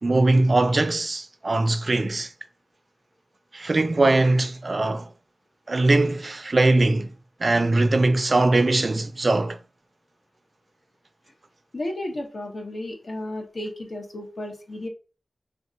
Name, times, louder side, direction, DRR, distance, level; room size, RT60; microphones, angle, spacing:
voice 1, 0.0-2.3 3.5-5.0 5.7-7.1 7.4-9.6, right 2 dB, 50° right, 0.3 m, -21 dB
voice 2, 11.7-14.9, left 1 dB, 70° left, 0.8 m, -33 dB
2.3 x 2.2 x 3.7 m
wide cardioid pair, 75°, 0 cm